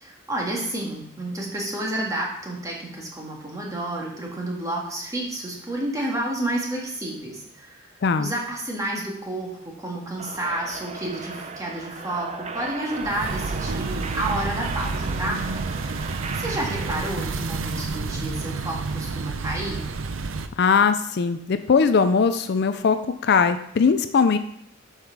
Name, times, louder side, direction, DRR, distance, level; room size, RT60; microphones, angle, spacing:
voice 1, 0.0-7.9 8.2-15.4 16.3-19.9, right 1 dB, 15° right, -2 dB, 1.7 m, -30 dB
voice 2, 8.0-8.3 20.6-23.0 23.2-24.4, left 5 dB, 55° left, 10 dB, 0.4 m, -20 dB
sound 1, 10.2-17.1, right 4 dB, 35° right, 0.5 m, -36 dB
sound 2, 13.0-20.5, right 3 dB, 80° right, 0.6 m, -29 dB
7.8 x 5.7 x 4.7 m, 0.72 s
head